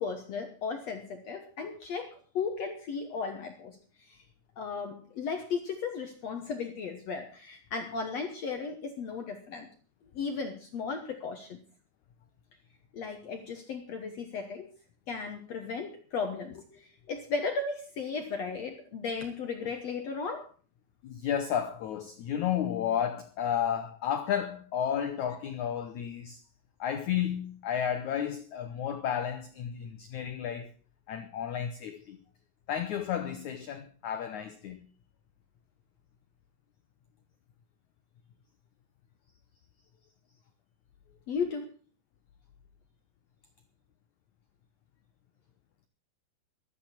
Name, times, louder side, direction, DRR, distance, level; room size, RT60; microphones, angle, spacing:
voice 1, 0.0-4.2 4.6-9.7 10.1-11.6 12.9-14.7 15.1-20.5 41.3-41.7, left 5 dB, 70° left, 1.6 m, -35 dB
voice 2, 21.0-26.4 26.8-30.7 31.1-32.2 32.7-34.9, left 9 dB, 85° left, 1.6 m, -32 dB
16.5 x 12.5 x 4.3 m
omnidirectional pair, 4.8 m